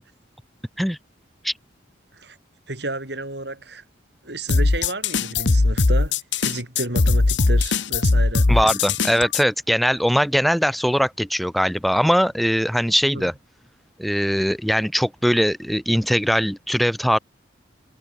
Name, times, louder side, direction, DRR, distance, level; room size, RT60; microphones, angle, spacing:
voice 1, 2.7-3.8 4.2-8.7 13.1-13.3, right 2 dB, 65° right, 5.2 m, -32 dB
sound 1, 4.5-9.4, left 3 dB, 75° left, 1.0 m, -19 dB
voice 2, 8.5-13.3 14.0-17.2, equal, ahead, 3.0 m, -21 dB
head